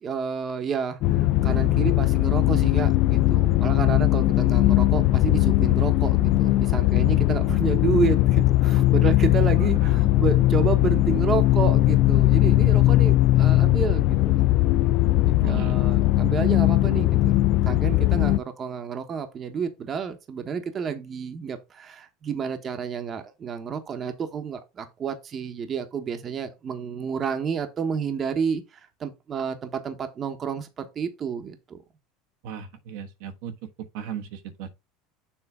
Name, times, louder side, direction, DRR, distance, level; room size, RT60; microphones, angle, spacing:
voice 1, 0.0-14.4 15.1-17.4 17.6-31.8, right 6 dB, 30° right, 1.1 m, -30 dB
sound 1, 1.0-18.4, left 16 dB, 55° left, 0.4 m, -19 dB
voice 2, 15.4-15.7 32.4-33.5 33.9-34.7, right 8 dB, 70° right, 1.1 m, -36 dB
7.1 x 3.2 x 4.9 m
supercardioid pair, 120°, 0 cm